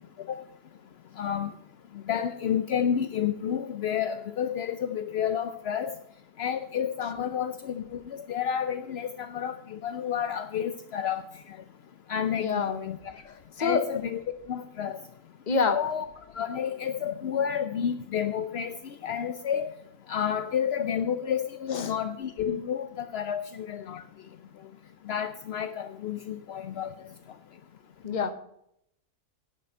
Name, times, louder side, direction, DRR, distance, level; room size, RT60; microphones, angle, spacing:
voice 1, 1.2-1.5 2.1-5.9 6.4-11.6 12.1-13.0 13.6-14.2 14.5-15.0 15.6-16.1 16.3-18.8 19.0-19.7 20.1-24.0 25.1-26.9, left 8 dB, 65° left, 9 dB, 0.6 m, -30 dB
voice 2, 12.4-12.8 13.6-13.8 15.5-15.8 21.7-21.9 28.0-28.3, left 5 dB, 35° left, 9 dB, 0.9 m, -26 dB
10.5 x 8.4 x 5.4 m, 0.75 s
omnidirectional pair, 1.6 m